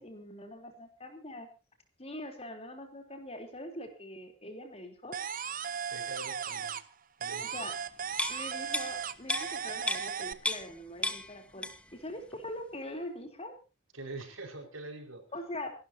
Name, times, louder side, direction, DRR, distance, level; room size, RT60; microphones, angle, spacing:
voice 1, 0.0-1.5 2.0-5.2 7.4-7.7 8.3-13.6 15.3-15.7, left 1 dB, 30° left, 5 dB, 3.5 m, -43 dB
sound 1, 5.1-6.9 7.2-10.3, right 7 dB, 40° right, 0.9 m, -36 dB
voice 2, 5.9-6.8 7.2-7.6 13.9-15.2, right 2 dB, 85° right, 3 dB, 5.5 m, -44 dB
sound 2, 8.1-10.8 11.0-12.0 12.3-12.5, left 2 dB, 5° left, 1.2 m, -35 dB
28.0 x 12.5 x 2.8 m, 0.32 s
head